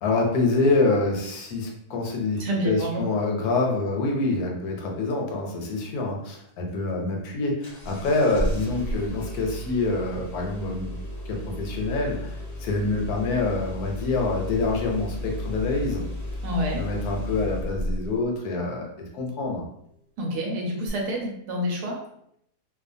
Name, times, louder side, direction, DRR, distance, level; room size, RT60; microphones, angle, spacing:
voice 1, 0.0-10.9 11.3-16.0 16.7-19.6, left 3 dB, 75° left, 0 dB, 1.0 m, -26 dB
voice 2, 2.4-3.1 16.4-16.8 20.2-22.0, equal, 75° right, -1 dB, 1.2 m, -28 dB
Engine starting, 7.6-18.2 20.9-21.0, left 1 dB, 40° left, 0.6 m, -33 dB
2.7 x 2.2 x 2.5 m, 0.74 s
omnidirectional pair, 1.7 m